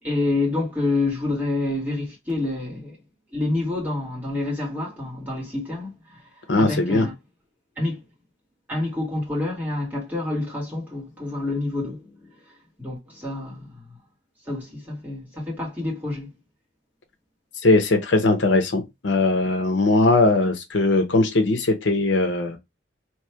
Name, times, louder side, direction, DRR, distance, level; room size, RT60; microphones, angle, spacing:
voice 1, 0.0-3.0 3.3-6.2 6.5-7.1 7.8-8.0 8.7-13.8 14.5-16.3, left 2 dB, 10° right, 1.7 m, -28 dB
voice 2, 6.5-7.1 17.6-22.6, left 2 dB, 70° left, 0.8 m, -20 dB
3.2 x 2.7 x 4.5 m
head